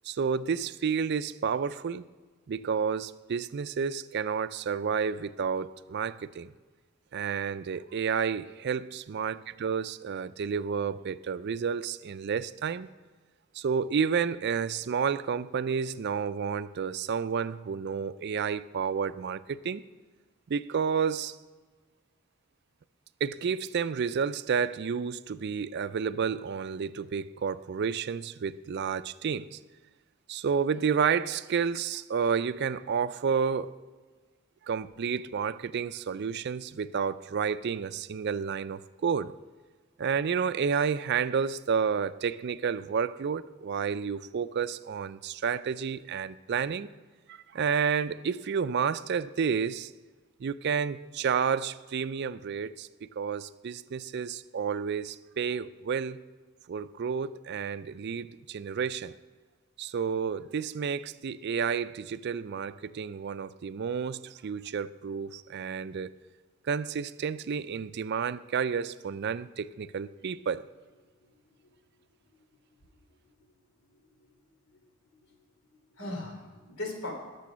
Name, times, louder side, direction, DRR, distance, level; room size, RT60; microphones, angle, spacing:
voice 1, 0.1-2.0 2.5-6.5 7.1-12.9 13.6-19.8 20.5-21.4 23.2-29.6 30.3-33.7 34.7-39.3 40.0-46.9 47.3-49.9 50.4-56.2 56.7-59.1 59.8-66.1 66.7-70.6, right 6 dB, 50° right, 0.4 m, -30 dB
voice 2, 75.6-77.1, left 2 dB, 80° left, 3.5 m, -39 dB
20.5 x 6.9 x 6.2 m
head